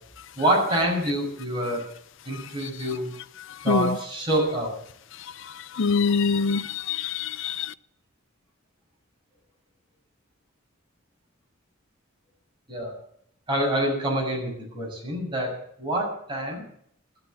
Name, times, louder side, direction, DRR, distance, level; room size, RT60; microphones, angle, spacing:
voice 1, 0.4-1.8 2.2-3.1 3.6-4.7 12.7-13.0 13.5-16.6, right 1 dB, 25° right, 6.7 m, -26 dB
voice 2, 5.7-7.7, left 5 dB, 65° left, 0.6 m, -24 dB
14.0 x 12.0 x 7.9 m
head